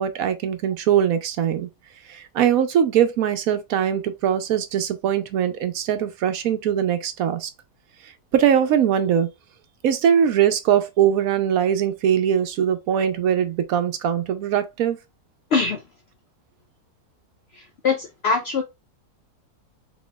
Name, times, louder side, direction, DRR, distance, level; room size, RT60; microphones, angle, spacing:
voice 1, 0.0-1.7 2.1-7.5 8.0-9.3 9.8-15.0, right 9 dB, 70° right, 1.0 m, -21 dB
voice 2, 15.5-15.8 17.5-18.6, left 4 dB, 70° left, 0.6 m, -23 dB
4.2 x 3.8 x 2.2 m
omnidirectional pair, 1.6 m